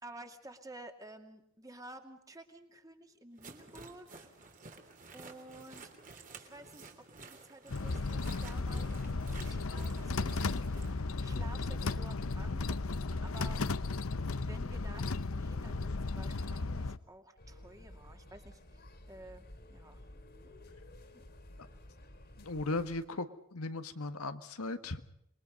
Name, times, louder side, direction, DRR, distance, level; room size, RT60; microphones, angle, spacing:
voice 1, 0.0-4.3 5.1-5.9 6.3-14.0 14.4-20.0 20.4-20.5 21.1-21.2, right 2 dB, 15° right, 5 dB, 2.5 m, -52 dB
sound 1, 3.4-10.9, right 3 dB, 35° right, 3.2 m, -52 dB
sound 2, 7.7-17.0, left 3 dB, 70° left, 0.8 m, -35 dB
sound 3, 17.4-23.1, left 1 dB, 45° left, 3.0 m, -53 dB
voice 2, 22.4-25.1, left 2 dB, 85° left, 9 dB, 1.7 m, -37 dB
27.0 x 22.0 x 5.4 m, 0.76 s
head